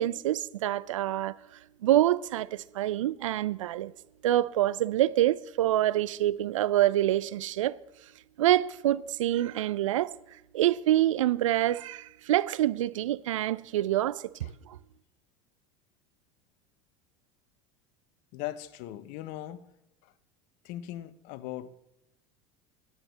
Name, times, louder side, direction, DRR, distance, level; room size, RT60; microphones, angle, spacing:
voice 1, 0.0-1.4 1.8-3.9 4.2-7.8 8.4-10.1 10.5-14.8, right 13 dB, 80° right, 0.5 m, -26 dB
voice 2, 18.3-19.7 20.0-20.1 20.6-21.7, left 13 dB, 60° left, 1.0 m, -39 dB
10.5 x 8.2 x 7.9 m
hypercardioid pair, 80°, 16 cm